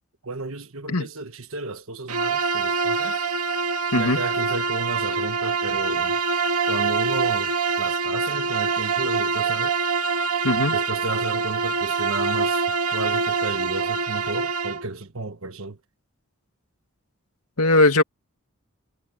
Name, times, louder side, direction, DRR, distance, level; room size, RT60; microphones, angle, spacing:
voice 1, 0.2-3.1 4.0-6.1 6.7-9.7 10.7-12.6 12.9-15.8, right 3 dB, 65° right, 1.3 m, -33 dB
Bowed string instrument, 2.1-14.9, right 4 dB, 90° right, 2.1 m, -25 dB
voice 2, 3.9-4.2 10.4-10.8 17.6-18.0, left 2 dB, 85° left, 2.2 m, -19 dB
head